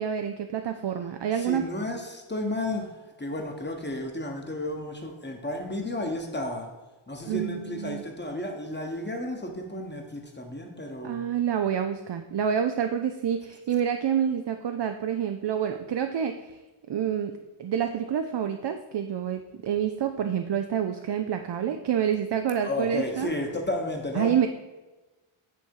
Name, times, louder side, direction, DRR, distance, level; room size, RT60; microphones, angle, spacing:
voice 1, 0.0-1.6 7.2-8.0 11.0-16.6 16.9-17.3 17.6-23.3 24.1-24.5, right 8 dB, 55° right, 7 dB, 0.5 m, -28 dB
voice 2, 1.4-6.7 7.1-11.2 22.5-24.3, left 1 dB, 20° left, 3 dB, 1.1 m, -32 dB
9.1 x 3.5 x 4.7 m, 1.2 s
wide cardioid pair, 65°, 50 cm